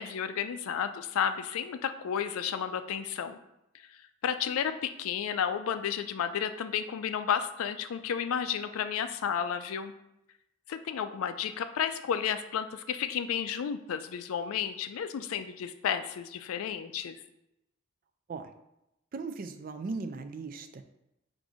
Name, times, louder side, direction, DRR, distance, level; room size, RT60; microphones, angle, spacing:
voice 1, 0.0-3.4 3.7-3.9 4.2-9.9 10.7-17.2, left 8 dB, 80° left, 10 dB, 0.3 m, -32 dB
voice 2, 19.1-20.8, right 4 dB, 40° right, 8 dB, 0.3 m, -38 dB
4.8 x 2.6 x 3.8 m, 0.86 s
head